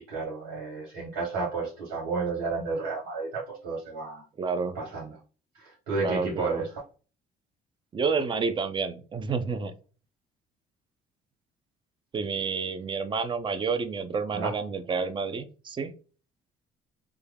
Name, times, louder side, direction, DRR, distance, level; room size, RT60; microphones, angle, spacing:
voice 1, 0.0-4.2 4.7-5.2 5.5-6.7 14.3-14.5, right 4 dB, 90° right, -4 dB, 1.5 m, -32 dB
voice 2, 4.4-4.8 6.0-6.6 7.9-9.7 12.1-15.9, right 5 dB, 30° right, 11 dB, 0.5 m, -29 dB
3.5 x 2.2 x 3.4 m, 0.37 s
cardioid pair, 110°, 17 cm